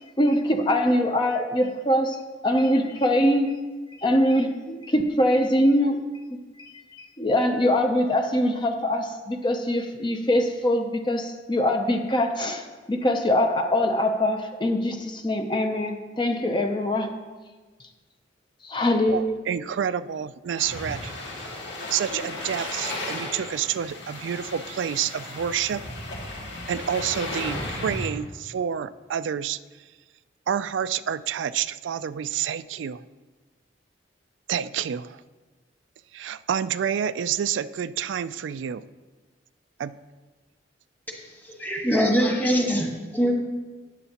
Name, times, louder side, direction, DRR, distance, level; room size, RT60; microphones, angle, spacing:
voice 1, 0.2-3.6 4.0-6.0 6.3-17.1 18.6-19.2, left 1 dB, 25° left, 5 dB, 0.6 m, -23 dB
voice 2, 19.1-21.1 21.9-25.8 26.7-29.6 30.5-33.0 34.5-35.2 36.1-38.8 39.8-39.9, right 8 dB, 90° right, 14 dB, 0.3 m, -28 dB
sound 1, 20.6-28.1, left 2 dB, 80° left, 2.0 m, -35 dB
voice 3, 41.5-43.3, equal, 10° left, 0 dB, 1.5 m, -23 dB
12.5 x 9.6 x 2.9 m, 1.3 s
head